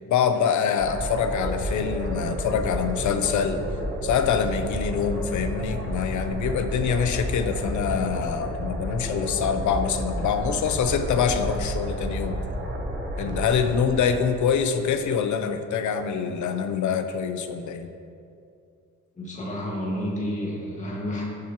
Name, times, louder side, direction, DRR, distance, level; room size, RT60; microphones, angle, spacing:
voice 1, 0.1-3.6 4.0-12.4 13.2-17.9, left 7 dB, 75° left, 8 dB, 0.7 m, -25 dB
sound 1, 0.8-15.0, right 1 dB, 35° right, 1.3 m, -31 dB
voice 2, 19.2-21.2, equal, 25° left, -4 dB, 1.9 m, -30 dB
14.0 x 7.5 x 3.0 m, 2.5 s
wide cardioid pair, 175°, 30 cm